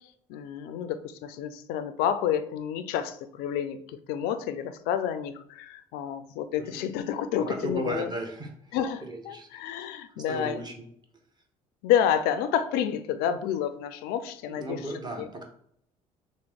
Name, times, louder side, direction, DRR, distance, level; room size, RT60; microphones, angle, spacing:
voice 1, 0.3-3.8 4.1-8.1 8.7-10.6 11.8-14.8, left 9 dB, 65° left, 11 dB, 0.4 m, -29 dB
voice 2, 6.6-6.9 7.4-9.5 10.2-10.7 14.5-15.4, right 1 dB, 25° right, 2 dB, 0.9 m, -36 dB
3.0 x 2.0 x 3.5 m, 0.67 s
hypercardioid pair, 55°, 18 cm